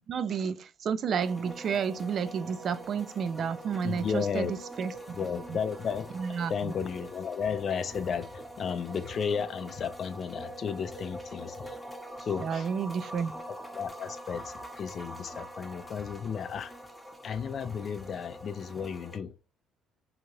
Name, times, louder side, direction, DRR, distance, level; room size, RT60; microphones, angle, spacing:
voice 1, 0.1-5.2 5.5-5.6 6.1-6.7 12.4-13.3, right 7 dB, 55° right, 0.3 m, -31 dB
sound 1, 1.2-19.2, right 1 dB, 5° left, 0.8 m, -44 dB
voice 2, 3.8-4.5 5.1-6.1 6.5-11.8 12.2-12.7 13.5-16.7 17.2-19.4, left 6 dB, 55° left, 0.4 m, -33 dB
2.8 x 2.4 x 3.0 m
supercardioid pair, 70°, 0 cm